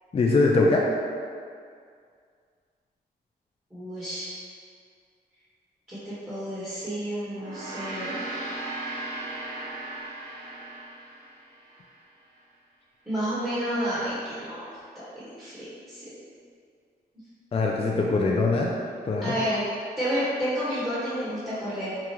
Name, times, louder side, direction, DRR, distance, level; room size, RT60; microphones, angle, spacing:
voice 1, 0.1-0.8 17.5-18.7 19.0-19.3, left 3 dB, 35° left, -1 dB, 0.4 m, -22 dB
voice 2, 3.7-4.3 5.9-8.2 13.1-14.7 14.9-16.1 19.2-19.7 20.0-22.0, equal, 15° right, -12 dB, 1.4 m, -30 dB
Gong, 7.3-11.9, right 2 dB, 80° right, 0.8 m, -37 dB
4.8 x 2.4 x 3.0 m, 2.2 s
cardioid pair, 80°, 17 cm